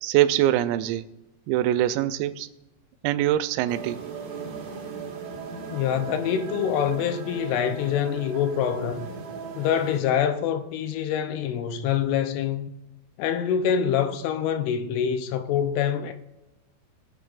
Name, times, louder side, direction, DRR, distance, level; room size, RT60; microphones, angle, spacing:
voice 1, 0.0-1.0 1.5-2.5 3.0-4.0, right 13 dB, 85° right, 3.3 m, -23 dB
sound 1, 3.7-10.0, right 5 dB, 65° right, 2.0 m, -37 dB
voice 2, 5.7-9.1 9.6-12.7 13.2-16.1, left 8 dB, 80° left, 3.0 m, -25 dB
18.5 x 9.0 x 2.5 m
omnidirectional pair, 6.0 m